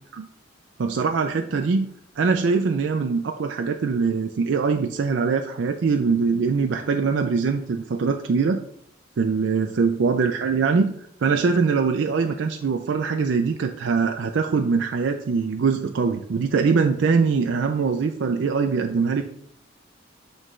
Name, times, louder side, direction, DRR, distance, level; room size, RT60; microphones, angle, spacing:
voice 1, 0.8-1.9 2.2-8.6 9.2-10.9 11.2-19.2, right 5 dB, 70° right, 5 dB, 0.4 m, -22 dB
8.6 x 3.1 x 3.7 m, 0.68 s
head